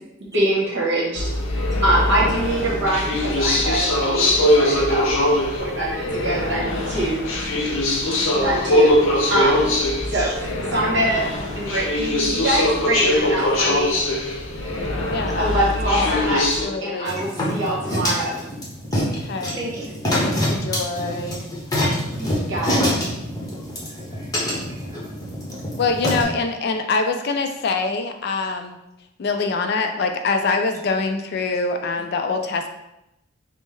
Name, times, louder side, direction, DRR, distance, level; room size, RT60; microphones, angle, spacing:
voice 1, 0.3-1.3 1.5-5.1 5.6-7.2 8.3-8.9 9.3-9.7 10.1-10.3 10.7-11.2 11.5-14.0 15.4-18.5 22.1-22.9, right 1 dB, 55° right, -4 dB, 1.2 m, -24 dB
sound 1, 1.1-16.6, left 1 dB, 75° left, 0.7 m, -21 dB
voice 2, 10.1-10.5 19.5-20.0 23.6-25.0, right 2 dB, 15° right, -4 dB, 0.7 m, -37 dB
voice 3, 15.1-15.6 15.9-17.2 19.0-19.6 20.2-21.4 25.8-28.8 29.2-32.7, left 4 dB, 50° left, 5 dB, 0.3 m, -25 dB
sound 2, 17.1-26.2, equal, 20° left, 0.8 m, -25 dB
5.2 x 2.0 x 3.2 m, 0.88 s
head